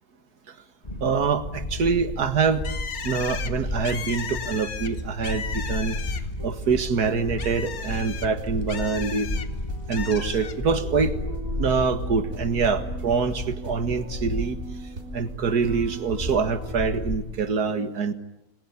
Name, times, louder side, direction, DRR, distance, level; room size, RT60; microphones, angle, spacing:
sound 1, 0.8-17.2, left 1 dB, 30° left, 2.7 m, -33 dB
voice 1, 1.0-2.7 3.0-6.0 6.4-9.3 9.9-11.2 11.6-14.6 15.1-18.1, right 5 dB, 90° right, 10 dB, 2.2 m, -25 dB
Bird, 2.6-6.5 6.8-9.5 9.9-10.6, left 7 dB, 70° left, 1.8 m, -35 dB
sound 2, 6.4-17.0, right 2 dB, 60° right, 4.2 m, -41 dB
28.5 x 21.5 x 9.7 m, 0.85 s
omnidirectional pair, 1.6 m